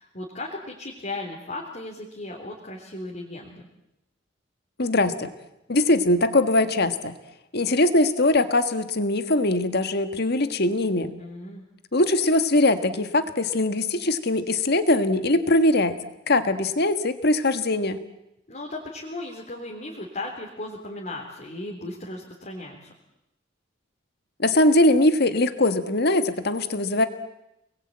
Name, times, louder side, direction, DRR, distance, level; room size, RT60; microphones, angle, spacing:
voice 1, 0.0-3.7 11.2-11.6 18.5-22.9, left 2 dB, 40° left, -2 dB, 3.7 m, -36 dB
voice 2, 4.8-5.3 5.7-7.1 7.5-11.1 11.9-16.0 16.3-18.0 24.4-27.0, left 2 dB, 55° left, 9 dB, 1.7 m, -21 dB
28.5 x 21.0 x 8.8 m, 0.89 s
head